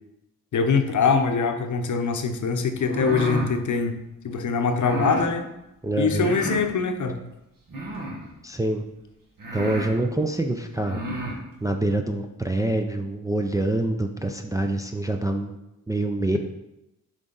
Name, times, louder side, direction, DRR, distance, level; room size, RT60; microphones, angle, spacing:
voice 1, 0.5-4.0 4.2-5.5 6.0-7.2, left 5 dB, 60° left, 7 dB, 0.8 m, -23 dB
sound 1, 2.8-3.5 4.8-5.3 6.1-6.7 7.7-8.3 9.0-9.1 9.4-9.9 10.7-11.4, right 1 dB, 70° right, 1.6 m, -31 dB
voice 2, 5.8-6.4 8.4-8.8 9.5-11.0 11.3-15.6 15.9-16.4, right 2 dB, 10° right, 4 dB, 0.4 m, -26 dB
7.9 x 4.9 x 3.9 m, 0.92 s
wide cardioid pair, 145°, 34 cm